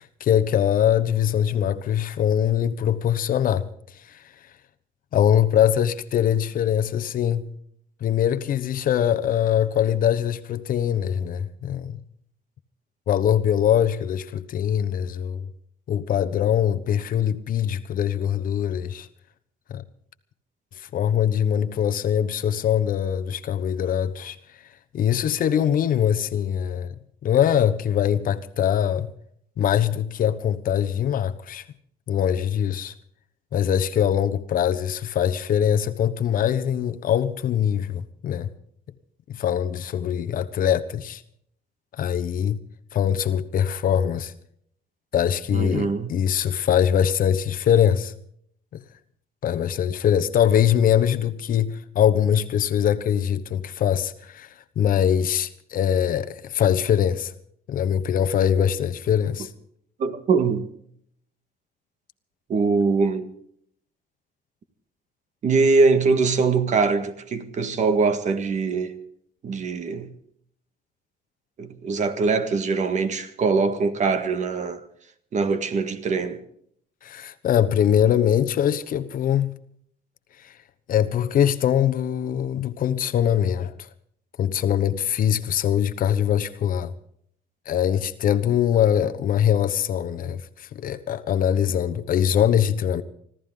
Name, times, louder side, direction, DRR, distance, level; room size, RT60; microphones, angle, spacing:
voice 1, 0.0-4.2 5.1-7.4 8.0-12.0 13.1-15.5 15.9-19.1 19.7-19.8 20.8-24.4 24.9-26.9 27.2-29.1 29.6-31.6 32.1-32.9 33.5-38.5 39.3-41.2 41.9-42.6 42.9-44.3 45.1-48.1 48.7-48.8 49.4-57.3 57.7-59.5 77.0-79.5 80.4-80.5 80.9-83.9 84.4-86.9 87.7-93.0, left 9 dB, 55° left, 1.1 m, -22 dB
voice 2, 45.5-46.2 60.0-60.7 62.5-63.3 65.4-69.0 69.4-70.1 71.6-74.8 75.3-76.4, right 4 dB, 45° right, 1.7 m, -22 dB
25.5 x 14.0 x 3.8 m
cardioid pair, 110°, 17 cm